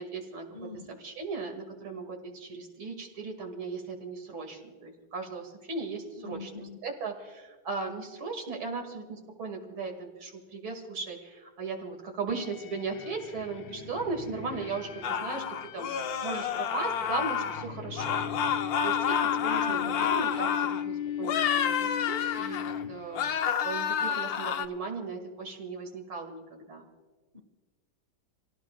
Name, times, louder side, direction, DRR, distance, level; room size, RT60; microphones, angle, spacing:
voice 1, 0.0-0.5 0.9-15.5 15.7-18.2 18.8-22.6 22.9-26.8, right 4 dB, 80° right, 3 dB, 3.0 m, -37 dB
voice 2, 0.5-1.0 6.2-6.8 19.6-20.1 27.3-27.4, left 3 dB, 35° right, 8 dB, 0.7 m, -44 dB
sound 1, 12.3-23.3, left 9 dB, 90° left, 1.8 m, -37 dB
sound 2, 15.0-17.7 18.0-20.8 21.2-22.8 23.1-24.7, left 8 dB, 65° left, 1.0 m, -29 dB
27.5 x 17.5 x 2.3 m, 1.3 s
omnidirectional pair, 2.2 m